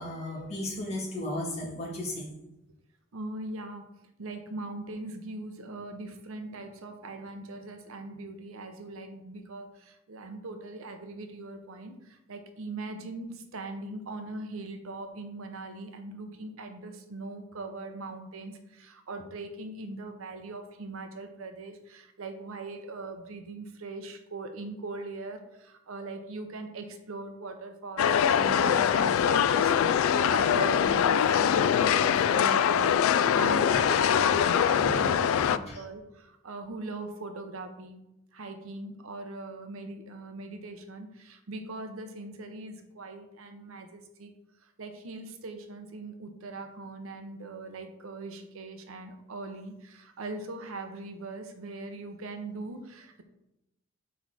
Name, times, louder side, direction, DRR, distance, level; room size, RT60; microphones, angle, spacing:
voice 1, 0.0-2.3 34.8-35.3 35.7-35.8, left 1 dB, 30° left, -7 dB, 2.2 m, -35 dB
voice 2, 3.1-3.9 4.2-38.0 38.3-44.3 44.6-53.2, right 2 dB, 80° right, 6 dB, 0.8 m, -40 dB
sound 1, 28.0-35.6, left 8 dB, 80° left, 0.3 m, -23 dB
6.4 x 4.6 x 4.1 m, 0.90 s
head